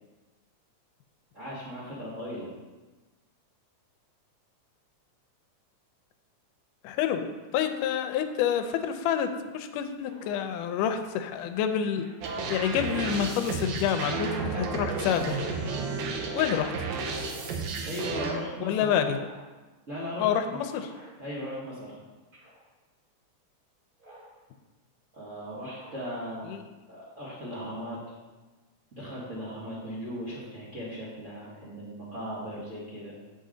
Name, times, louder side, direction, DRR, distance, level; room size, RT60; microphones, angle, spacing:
voice 1, 1.3-2.5 17.9-18.9 19.9-20.6 21.2-21.9 25.1-26.5 26.9-28.0 28.9-33.1, equal, 40° right, -8 dB, 1.0 m, -37 dB
voice 2, 6.8-7.3 7.5-12.1 12.5-15.4 16.3-16.7 18.6-19.2 20.2-21.0 26.5-26.6, left 8 dB, 85° left, 7 dB, 2.1 m, -28 dB
Speech synthesizer, 8.5-8.9 10.1-10.5 11.9-12.3 13.4-13.9 15.3-15.8 17.0-17.6 18.9-19.4 20.7-21.1 22.3-22.7 24.0-24.4 25.6-26.1, right 1 dB, 20° right, 1.4 m, -51 dB
sound 1, 12.2-18.3, right 4 dB, 70° right, 2.0 m, -32 dB
8.3 x 5.5 x 3.8 m, 1.2 s
omnidirectional pair, 3.6 m